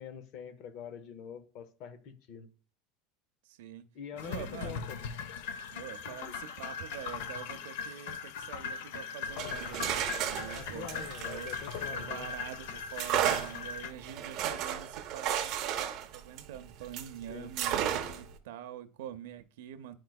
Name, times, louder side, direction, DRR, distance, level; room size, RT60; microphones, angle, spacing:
voice 1, 0.0-2.5 3.9-5.0 6.1-6.4 10.5-12.3 17.3-17.5, left 7 dB, 45° left, 0.7 m, -45 dB
voice 2, 3.4-3.9 4.1-4.9 5.7-11.5 11.9-20.0, right 10 dB, 85° right, 0.6 m, -45 dB
sound 1, 4.2-13.9, left 6 dB, 75° left, 0.6 m, -39 dB
sound 2, 9.3-12.3 13.0-17.1 17.6-18.3, right 10 dB, 40° right, 0.6 m, -33 dB
10.0 x 4.5 x 2.3 m
supercardioid pair, 175°, 0 cm